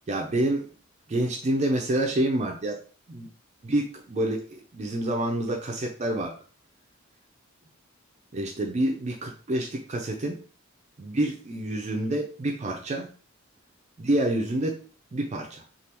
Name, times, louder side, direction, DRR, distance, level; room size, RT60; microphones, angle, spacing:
voice 1, 0.1-0.7 1.1-2.8 3.1-3.3 3.6-6.4 8.3-10.4 11.0-13.1 14.0-14.8 15.1-15.6, right 1 dB, 35° right, 1 dB, 0.4 m, -27 dB
3.3 x 2.4 x 2.8 m, 0.38 s
head